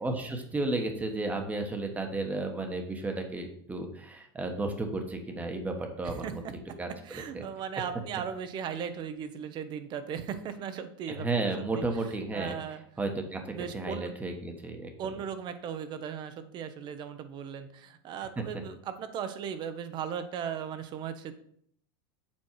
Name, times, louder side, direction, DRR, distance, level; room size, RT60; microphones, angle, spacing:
voice 1, 0.0-6.4 6.8-7.4 11.1-12.6 13.0-14.9 18.4-18.5, right 2 dB, 10° right, 4 dB, 1.1 m, -33 dB
voice 2, 7.0-11.9 12.3-12.8 13.4-14.1 15.0-21.3, right 8 dB, 35° right, 10 dB, 0.8 m, -37 dB
7.3 x 4.6 x 4.6 m, 0.64 s
supercardioid pair, 140°, 13 cm